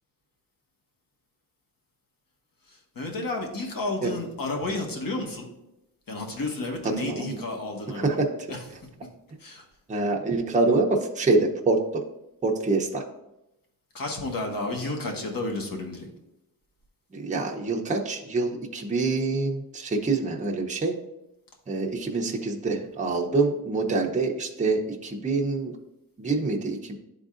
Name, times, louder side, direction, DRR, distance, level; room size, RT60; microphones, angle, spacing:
voice 1, 2.9-5.5 6.1-8.2 8.5-8.6 9.4-9.6 13.9-16.1, left 2 dB, 55° left, 1 dB, 1.4 m, -31 dB
voice 2, 7.0-7.4 7.9-8.3 9.9-12.0 12.4-13.0 17.1-20.9 21.7-25.8 26.2-27.0, right 3 dB, 20° right, 0 dB, 0.7 m, -26 dB
11.5 x 3.8 x 2.5 m, 0.89 s
wide cardioid pair, 145°, 40 cm